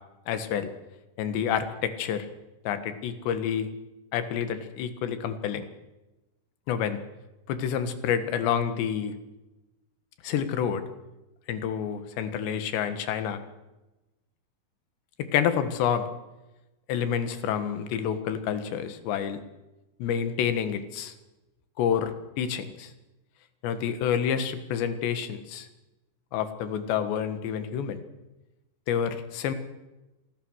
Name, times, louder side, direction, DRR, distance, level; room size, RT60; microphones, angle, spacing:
voice 1, 0.3-0.7 1.2-2.3 2.7-3.7 4.1-5.7 6.7-7.0 7.5-9.2 10.2-10.8 11.5-13.4 15.3-16.1 16.9-19.4 20.0-21.1 21.8-22.1 22.4-22.9 23.6-25.7 26.3-28.0 28.9-29.5, left 8 dB, 75° left, 10 dB, 3.8 m, -28 dB
26.5 x 19.0 x 6.4 m, 1.0 s
omnidirectional pair, 5.1 m